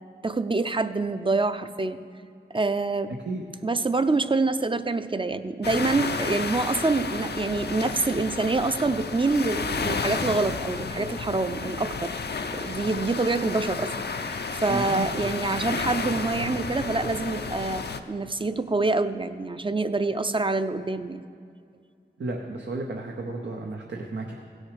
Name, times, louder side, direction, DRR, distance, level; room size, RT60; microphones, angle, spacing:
voice 1, 0.2-2.0 2.5-3.1 3.6-12.1 12.5-13.9 14.2-21.2, right 3 dB, 30° right, 11 dB, 0.5 m, -26 dB
sound 1, 5.6-18.0, left 4 dB, 65° left, 0.6 m, -32 dB
voice 2, 14.7-15.3 22.2-24.4, right 2 dB, 90° right, 0 dB, 0.8 m, -33 dB
16.5 x 6.4 x 4.9 m, 2.3 s
cardioid pair, 40°, 18 cm